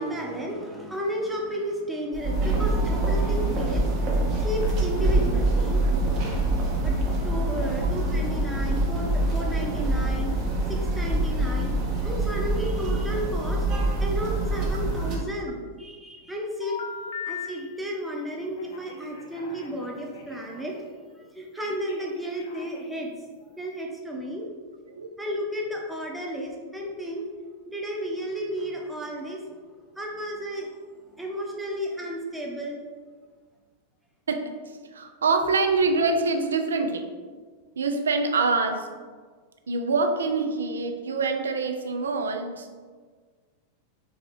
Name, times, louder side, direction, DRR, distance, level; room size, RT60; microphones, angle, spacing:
voice 1, 0.0-5.9 6.8-7.0 7.2-11.7 12.0-13.7 14.0-16.8 17.2-20.8 21.1-23.1 23.4-24.5 25.2-27.3 27.7-29.4 29.9-30.7 31.1-32.8, equal, 5° right, -2 dB, 0.8 m, -33 dB
sound 1, 2.1-15.2, right 2 dB, 35° right, 0.9 m, -25 dB
Telephone, 16.6-17.5 18.6-20.7 21.6-23.0, left 6 dB, 60° left, 0.6 m, -39 dB
voice 2, 34.9-37.0 37.8-38.9 39.7-42.7, right 3 dB, 70° right, 6 dB, 0.4 m, -25 dB
3.7 x 3.5 x 3.3 m, 1.5 s
figure-of-eight pair, 90°, 0 cm